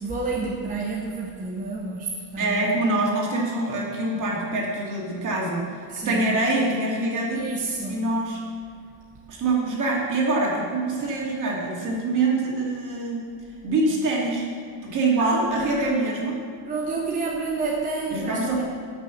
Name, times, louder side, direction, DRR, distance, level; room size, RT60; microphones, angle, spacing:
voice 1, 0.0-2.6 5.9-6.3 7.3-8.0 15.2-15.9 16.7-18.6, right 3 dB, 15° right, -3 dB, 0.9 m, -29 dB
voice 2, 2.4-5.8 6.0-7.4 7.9-8.4 9.3-13.3 13.6-14.5 14.8-16.4 18.1-18.6, right 2 dB, 40° right, -3 dB, 2.6 m, -24 dB
11.5 x 6.2 x 7.1 m, 2.3 s
cardioid pair, 170°, 49 cm